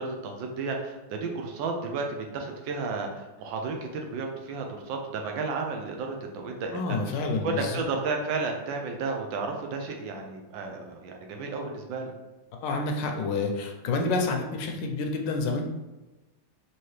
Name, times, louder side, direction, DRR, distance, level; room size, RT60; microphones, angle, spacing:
voice 1, 0.0-12.1, right 4 dB, 80° right, 3 dB, 1.4 m, -33 dB
voice 2, 6.7-7.8 12.6-15.6, left 3 dB, 75° left, 3 dB, 1.2 m, -28 dB
4.6 x 2.9 x 3.1 m, 1.1 s
omnidirectional pair, 2.0 m